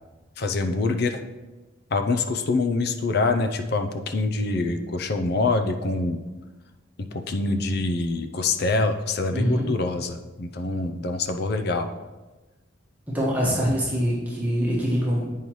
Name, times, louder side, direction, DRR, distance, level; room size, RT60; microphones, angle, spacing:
voice 1, 0.4-1.2 1.9-6.2 7.0-11.9, left 3 dB, 55° left, 7 dB, 0.5 m, -25 dB
voice 2, 9.3-9.7 13.1-15.3, equal, 10° right, -6 dB, 1.4 m, -24 dB
8.3 x 5.5 x 3.1 m, 1.2 s
head